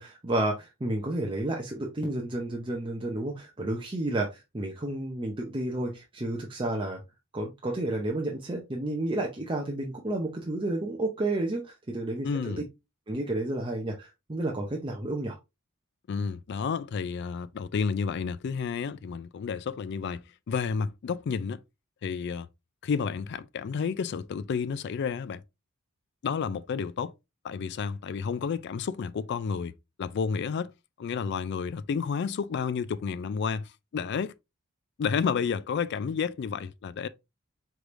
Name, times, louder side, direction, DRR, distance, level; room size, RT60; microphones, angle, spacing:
voice 1, 0.0-7.0 7.3-12.5 13.1-15.4, right 1 dB, 25° right, 0.6 m, -31 dB
voice 2, 12.2-12.6 16.1-21.6 22.0-22.5 22.8-25.4 26.2-27.1 27.4-29.7 30.0-30.7 31.0-34.3 35.0-37.1, left 6 dB, 50° left, 0.3 m, -31 dB
4.7 x 3.3 x 2.5 m
head